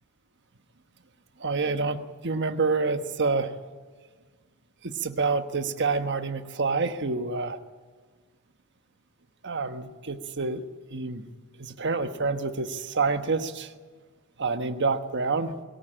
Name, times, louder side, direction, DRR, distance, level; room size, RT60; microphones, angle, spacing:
voice 1, 1.4-3.5 4.8-7.6 9.4-10.6 10.9-11.3 11.6-13.7 14.4-15.5, right 4 dB, 55° right, 9 dB, 1.2 m, -27 dB
22.0 x 17.5 x 8.9 m, 1.5 s
head